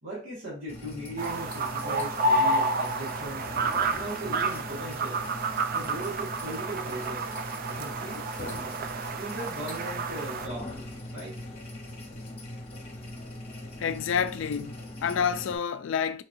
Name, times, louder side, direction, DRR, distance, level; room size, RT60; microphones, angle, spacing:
voice 1, 0.0-3.5 3.9-5.2 5.7-7.3 7.6-8.3 9.2-10.8 11.1-11.4, right 1 dB, 85° right, 1.8 m, -38 dB
sound 1, 0.7-15.6, left 1 dB, 30° left, 0.9 m, -41 dB
sound 2, 1.2-10.5, right 2 dB, 45° right, 0.4 m, -30 dB
voice 2, 13.8-16.2, left 7 dB, 70° left, 0.3 m, -29 dB
4.4 x 2.7 x 2.5 m
head